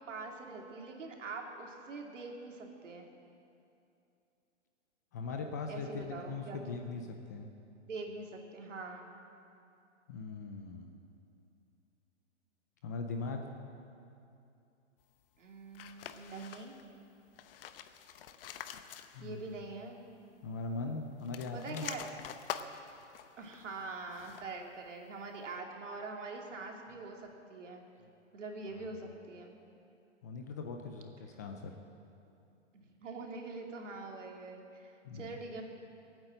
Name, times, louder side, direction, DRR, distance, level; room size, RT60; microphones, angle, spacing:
voice 1, 0.0-3.1 5.7-6.6 7.9-9.1 15.4-16.8 19.2-20.0 21.5-22.1 23.4-27.8 28.3-29.5 32.7-35.6, right 3 dB, 80° right, 1 dB, 2.7 m, -44 dB
voice 2, 5.1-7.5 10.1-11.0 12.8-13.4 19.1-19.4 20.4-21.9 28.7-28.9 30.2-31.7 35.0-35.4, left 4 dB, 15° left, 3 dB, 0.4 m, -40 dB
sound 1, 15.7-16.9 17.3-19.5 19.8-19.9 21.1-24.6, left 9 dB, 50° left, 0.9 m, -46 dB
20.5 x 8.9 x 7.8 m, 2.7 s
hypercardioid pair, 150°, 36 cm